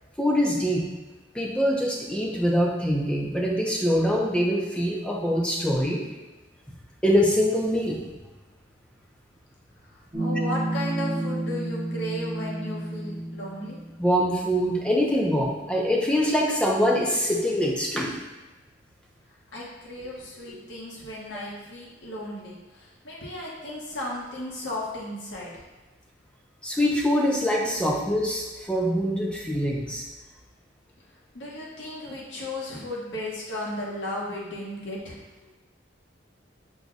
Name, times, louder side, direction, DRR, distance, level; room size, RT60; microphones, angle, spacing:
voice 1, 0.2-0.9 1.3-6.0 7.0-8.0 14.0-18.1 26.6-30.0, equal, 5° left, -1 dB, 0.5 m, -24 dB
voice 2, 9.8-13.8 19.3-25.6 31.3-35.2, left 1 dB, 75° left, -4 dB, 1.1 m, -35 dB
sound 1, 10.1-14.0, right 1 dB, 20° right, 0.8 m, -30 dB
6.0 x 2.2 x 3.9 m, 1.2 s
head